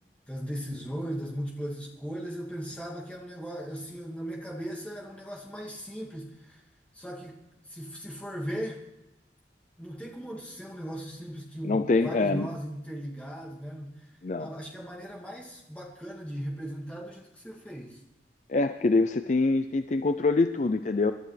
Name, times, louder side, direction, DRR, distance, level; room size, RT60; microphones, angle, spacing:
voice 1, 0.3-6.7 6.9-8.9 9.8-18.0, equal, 10° left, -4 dB, 2.4 m, -38 dB
voice 2, 11.6-12.5 14.2-14.5 18.5-21.1, left 3 dB, 40° left, 9 dB, 0.4 m, -25 dB
28.0 x 11.5 x 3.3 m, 0.96 s
head